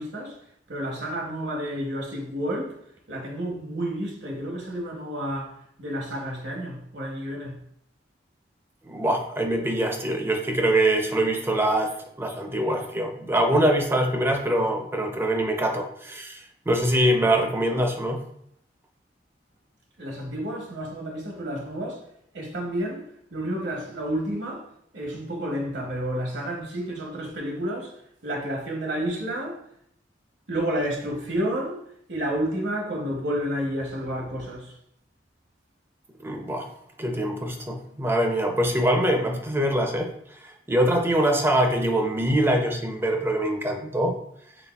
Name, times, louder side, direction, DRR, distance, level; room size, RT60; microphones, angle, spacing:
voice 1, 0.0-2.8 3.1-7.6 20.0-22.1 22.3-29.6 30.5-31.8 32.1-34.8, right 1 dB, 70° right, 0.8 m, -30 dB
voice 2, 8.8-18.2 36.2-36.7 37.0-40.1 40.4-44.1, right 1 dB, 15° right, 0.4 m, -24 dB
4.0 x 3.8 x 2.3 m
head